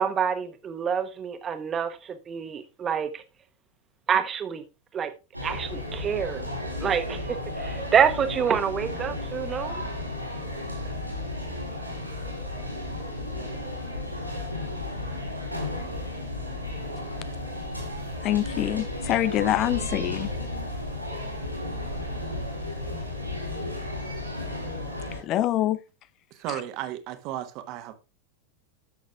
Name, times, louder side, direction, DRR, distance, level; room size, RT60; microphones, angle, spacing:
voice 1, 0.0-3.2 4.1-4.6 4.9-5.1 5.4-6.5 6.8-7.2 7.6-9.8, right 7 dB, 25° right, 1.2 m, -27 dB
sound 1, 5.3-25.2, left 1 dB, 90° right, 3.8 m, -33 dB
voice 2, 18.2-20.3 25.2-25.8, left 13 dB, 35° left, 0.4 m, -25 dB
voice 3, 26.3-27.9, right 12 dB, 40° right, 1.2 m, -34 dB
13.0 x 6.5 x 2.4 m
figure-of-eight pair, 90°, 0 cm